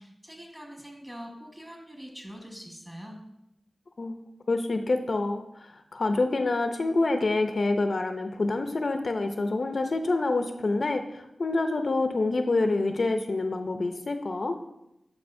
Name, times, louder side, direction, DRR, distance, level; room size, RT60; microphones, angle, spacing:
voice 1, 0.0-3.2, equal, 20° right, 0 dB, 1.5 m, -44 dB
voice 2, 4.5-14.6, left 2 dB, 65° left, 7 dB, 0.5 m, -27 dB
10.0 x 4.8 x 2.6 m, 0.86 s
cardioid pair, 50°, 0 cm